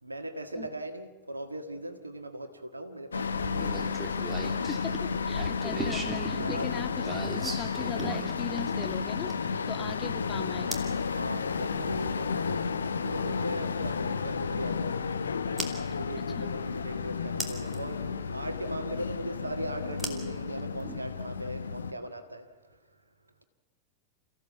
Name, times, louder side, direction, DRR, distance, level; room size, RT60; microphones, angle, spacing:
voice 1, 0.0-3.8 6.4-6.7 11.0-15.0 15.9-18.1 18.3-22.8, right 1 dB, 80° right, 7 dB, 1.7 m, -39 dB
sound 1, 3.1-21.9, left 5 dB, 70° left, 0.9 m, -32 dB
sound 2, 3.6-9.6 10.7-11.0 12.8-12.9 15.6-15.7 17.4-17.8 20.0-21.0, right 2 dB, 10° right, 2.9 m, -37 dB
voice 2, 4.6-9.3 9.7-10.8 16.4-16.5, left 7 dB, 25° left, 6 dB, 1.8 m, -39 dB
29.0 x 15.5 x 7.2 m, 1.3 s
figure-of-eight pair, 90°, 0 cm